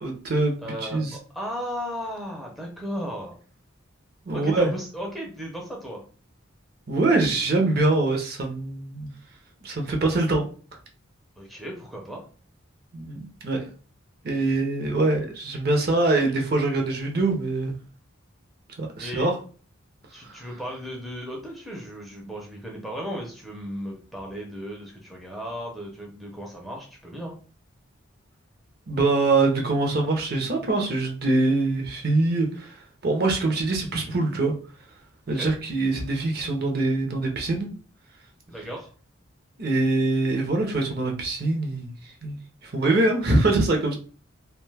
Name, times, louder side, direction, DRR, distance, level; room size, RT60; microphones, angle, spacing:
voice 1, 0.0-1.2 4.3-4.7 6.9-9.1 9.6-10.5 12.9-13.7 14.2-17.7 18.8-19.3 20.2-20.4 28.9-32.8 33.0-34.5 35.3-37.7 39.6-42.4 42.6-43.9, right 2 dB, 50° right, 2 dB, 0.6 m, -24 dB
voice 2, 0.6-3.3 4.3-6.0 11.4-12.2 19.0-19.3 20.1-27.3 35.3-35.5 38.5-38.9, equal, ahead, -1 dB, 0.5 m, -35 dB
2.6 x 2.2 x 3.2 m, 0.39 s
head